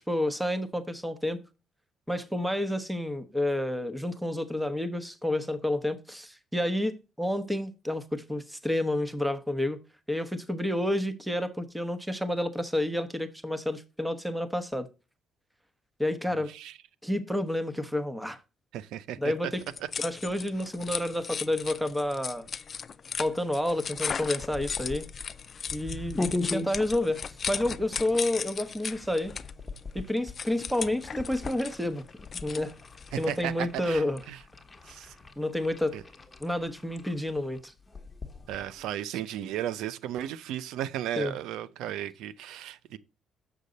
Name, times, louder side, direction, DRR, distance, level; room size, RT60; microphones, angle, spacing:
voice 1, 0.1-1.4 2.1-9.8 10.1-14.9 16.0-16.5 17.0-18.4 19.2-19.6 20.0-22.5 23.2-25.1 25.7-29.3 29.9-32.0 32.4-32.7 33.2-34.2 35.4-36.0 36.4-37.7 41.2-41.4, left 1 dB, 5° right, 1.1 m, -30 dB
voice 2, 18.7-19.3 33.1-34.4 34.9-35.1 35.9-36.0 38.5-43.0, right 11 dB, 85° right, 0.5 m, -35 dB
sound 1, 19.5-33.4, left 6 dB, 45° left, 0.4 m, -37 dB
sound 2, 24.4-38.9, left 3 dB, 20° left, 1.2 m, -40 dB
6.8 x 6.3 x 4.0 m
cardioid pair, 85°, 0 cm